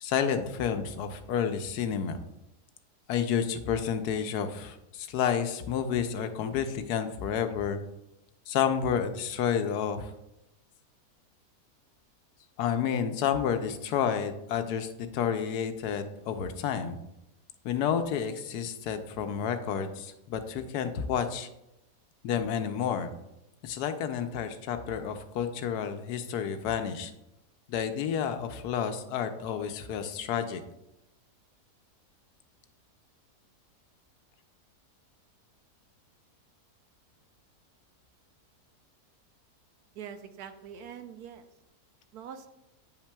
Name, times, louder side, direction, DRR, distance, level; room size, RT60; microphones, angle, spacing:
voice 1, 0.0-2.2 3.1-7.8 8.5-10.1 12.6-17.0 17.6-21.5 22.2-23.1 23.6-27.1 27.7-30.6, left 8 dB, 80° left, 8 dB, 1.1 m, -30 dB
voice 2, 39.9-41.5 42.1-42.5, right 8 dB, 75° right, 8 dB, 1.1 m, -43 dB
9.0 x 5.8 x 2.2 m, 0.87 s
omnidirectional pair, 1.7 m